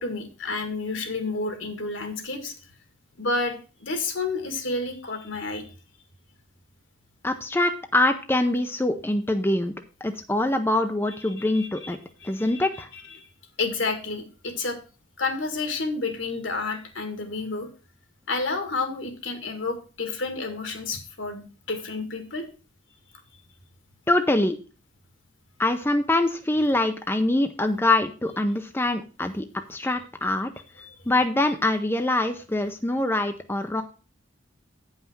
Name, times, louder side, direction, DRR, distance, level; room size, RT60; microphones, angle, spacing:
voice 1, 0.0-2.5 3.2-5.6 11.4-11.9 12.2-13.3 13.6-14.8 15.2-17.7 18.3-22.5 30.8-30.9, left 3 dB, 70° left, 6 dB, 2.1 m, -30 dB
voice 2, 7.2-9.7 10.0-12.0 12.2-12.9 24.1-24.6 25.6-30.5 31.1-33.8, left 2 dB, 10° left, 6 dB, 0.6 m, -24 dB
9.1 x 5.6 x 6.0 m, 0.34 s
head